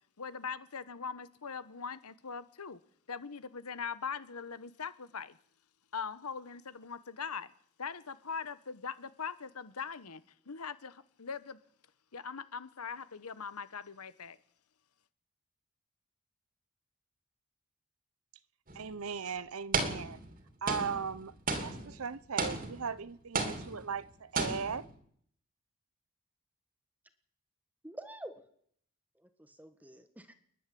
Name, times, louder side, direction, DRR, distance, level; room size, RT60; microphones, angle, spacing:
voice 1, 0.2-2.8 3.1-5.4 5.9-7.5 7.8-11.6 12.1-14.4, left 6 dB, 90° left, 1.1 m, -41 dB
sound 1, 18.7-18.9 19.7-20.4 20.7-23.0 23.3-24.1 24.3-24.9, right 3 dB, 40° right, 2.9 m, -34 dB
voice 2, 18.7-20.2 20.6-21.3 21.6-24.9, right 6 dB, 75° right, 0.8 m, -38 dB
voice 3, 27.8-28.4 29.1-30.4, right 1 dB, 5° right, 1.5 m, -48 dB
28.5 x 11.0 x 8.5 m
head